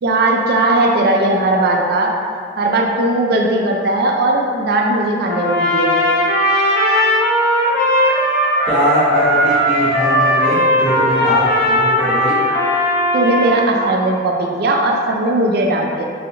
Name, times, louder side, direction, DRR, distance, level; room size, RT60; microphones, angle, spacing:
voice 1, 0.0-2.1 2.6-6.0 13.1-16.0, right 2 dB, 55° right, 0 dB, 0.4 m, -17 dB
Trumpet, 5.2-13.6, equal, 55° left, 0.5 m, -17 dB
voice 2, 8.6-12.4, equal, 5° right, -14 dB, 0.8 m, -20 dB
3.1 x 2.8 x 2.6 m, 2.3 s
head